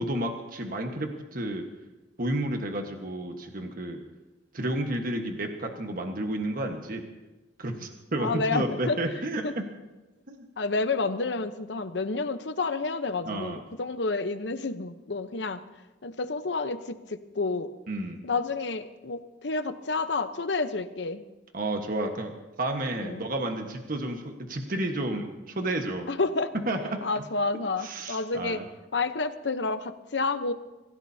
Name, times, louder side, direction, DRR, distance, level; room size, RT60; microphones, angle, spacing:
voice 1, 0.0-1.7 2.2-4.0 4.5-7.0 7.6-9.6 10.3-10.4 13.2-13.6 17.9-18.2 21.5-22.3 22.6-26.1 26.7-27.2 27.8-28.6, right 1 dB, 55° right, 4 dB, 1.4 m, -31 dB
voice 2, 8.2-9.0 9.4-9.5 10.6-15.6 16.0-17.7 18.2-21.2 23.0-23.2 26.1-26.5 27.0-28.6 28.9-30.5, left 3 dB, 80° left, 10 dB, 0.9 m, -29 dB
26.0 x 16.0 x 2.8 m, 1.1 s
head